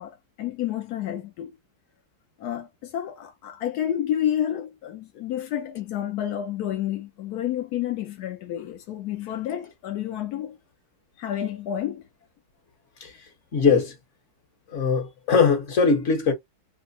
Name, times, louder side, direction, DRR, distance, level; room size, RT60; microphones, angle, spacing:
voice 1, 0.0-1.5 2.4-10.6 11.2-12.0, left 11 dB, 80° left, 0.8 m, -30 dB
voice 2, 13.5-13.9 14.7-16.3, left 5 dB, 40° left, 1.3 m, -21 dB
3.6 x 2.0 x 3.9 m
omnidirectional pair, 2.4 m